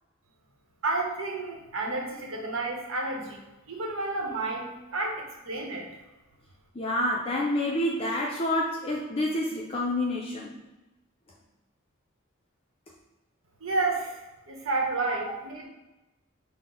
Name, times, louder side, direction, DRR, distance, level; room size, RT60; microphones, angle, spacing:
voice 1, 0.8-3.4 3.7-5.9 13.6-14.1 14.5-15.6, right 3 dB, 75° right, 0 dB, 0.8 m, -30 dB
voice 2, 6.7-10.6, left 1 dB, 30° left, -2 dB, 0.4 m, -28 dB
5.6 x 2.0 x 3.6 m, 1.1 s
head